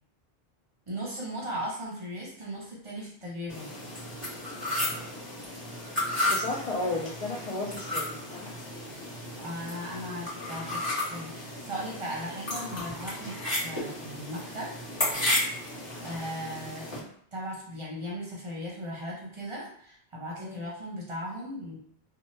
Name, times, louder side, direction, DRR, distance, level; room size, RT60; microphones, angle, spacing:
voice 1, 0.9-3.7 9.4-14.7 16.0-16.9 17.3-21.8, equal, 35° right, -4 dB, 0.7 m, -37 dB
sound 1, 3.5-17.0, left 1 dB, 25° left, 1.3 m, -33 dB
voice 2, 6.3-8.5 20.4-20.6, left 2 dB, 55° left, -4 dB, 0.4 m, -34 dB
2.8 x 2.1 x 3.2 m, 0.63 s
omnidirectional pair, 1.0 m